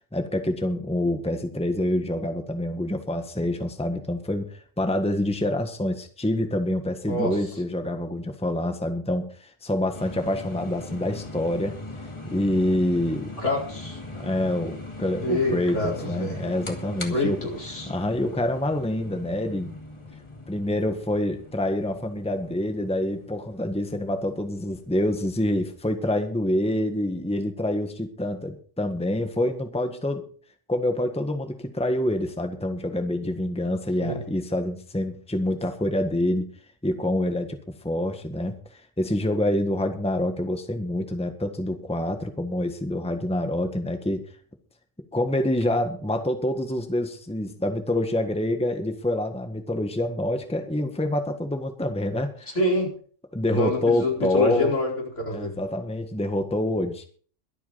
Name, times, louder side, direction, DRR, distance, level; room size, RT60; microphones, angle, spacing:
voice 1, 0.1-11.7 12.3-13.3 14.2-17.4 17.9-19.8 20.5-30.2 30.7-36.5 36.8-37.6 37.8-44.3 45.1-52.6 53.3-54.8 55.3-57.0, left 1 dB, 5° left, 6 dB, 1.5 m, -26 dB
sound 1, 9.9-25.9, left 2 dB, 25° left, 2.2 m, -40 dB
voice 2, 13.4-14.0 15.2-16.4 17.1-17.9 34.0-34.2 52.5-52.9 53.5-55.5, left 1 dB, 70° left, 0 dB, 4.8 m, -26 dB
22.5 x 8.5 x 4.1 m, 0.44 s
omnidirectional pair, 1.3 m